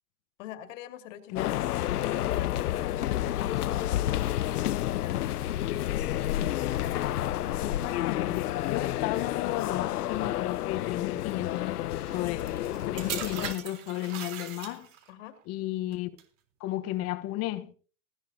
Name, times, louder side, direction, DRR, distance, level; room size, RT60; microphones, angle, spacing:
voice 1, 0.4-4.0 4.5-5.5 15.1-15.4, left 12 dB, 55° left, 2.4 m, -45 dB
sound 1, 1.4-13.5, left 13 dB, 85° left, 0.7 m, -30 dB
voice 2, 7.6-11.8 12.1-14.9 15.5-16.1 16.6-17.7, left 15 dB, 35° left, 1.1 m, -34 dB
sound 2, 12.1-15.1 15.9-16.2, right 10 dB, 55° right, 3.7 m, -39 dB
19.0 x 15.5 x 2.8 m
hypercardioid pair, 135°, 44 cm